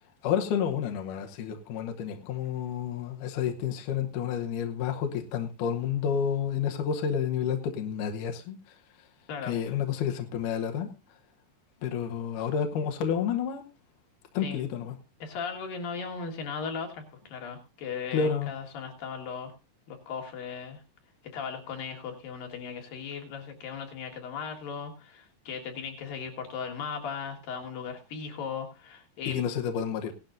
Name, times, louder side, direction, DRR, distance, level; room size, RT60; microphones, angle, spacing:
voice 1, 0.2-8.8 9.5-10.9 11.8-13.6 14.3-15.0 18.1-18.5 29.3-30.1, left 8 dB, 70° left, 3 dB, 2.5 m, -30 dB
voice 2, 9.3-9.7 14.4-14.6 15.2-19.5 19.9-20.8 21.3-29.4, left 6 dB, 90° left, 3 dB, 3.6 m, -37 dB
17.0 x 11.5 x 2.6 m, 0.28 s
omnidirectional pair, 3.9 m